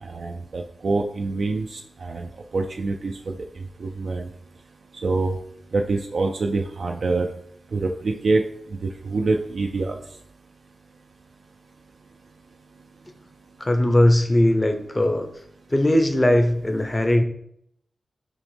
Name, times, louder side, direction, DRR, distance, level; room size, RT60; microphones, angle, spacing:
voice 1, 0.0-3.3 3.8-4.3 5.0-5.3 5.7-7.3 7.7-8.4 8.8-10.0, right 3 dB, 70° right, 2 dB, 0.3 m, -25 dB
voice 2, 13.6-15.3 15.7-17.2, left 1 dB, 25° left, 6 dB, 0.6 m, -19 dB
5.9 x 2.0 x 3.2 m, 0.71 s
cardioid pair, 50°, 0 cm